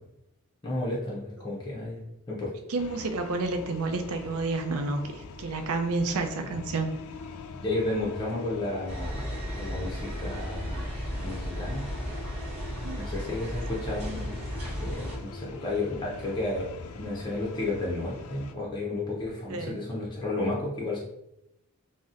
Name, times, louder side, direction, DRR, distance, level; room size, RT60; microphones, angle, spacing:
voice 1, 0.6-2.5 6.1-6.2 7.6-9.2 9.5-10.9 11.2-11.8 13.0-14.3 14.8-21.0, left 2 dB, 20° left, -5 dB, 0.5 m, -32 dB
voice 2, 2.7-6.9 12.8-13.0 19.5-19.8, right 3 dB, 85° right, 6 dB, 0.4 m, -30 dB
sound 1, 2.8-18.5, left 4 dB, 80° left, 0.3 m, -43 dB
sound 2, 8.9-15.2, equal, 30° right, 1.1 m, -35 dB
4.0 x 2.0 x 2.4 m, 0.82 s
head